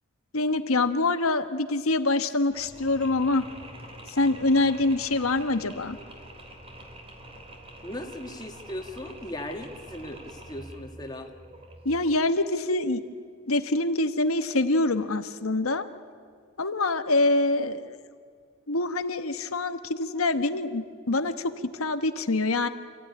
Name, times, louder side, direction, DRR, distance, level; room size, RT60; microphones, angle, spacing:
voice 1, 0.3-3.5 4.1-6.0 11.8-13.0 13.5-15.9 16.6-18.0 18.7-22.7, left 2 dB, 85° left, 9 dB, 1.3 m, -25 dB
Mechanisms, 2.5-12.3, right 1 dB, 25° right, 3.4 m, -46 dB
voice 2, 7.8-11.3, left 1 dB, 20° left, 4 dB, 2.0 m, -38 dB
28.0 x 16.0 x 10.0 m, 2.2 s
head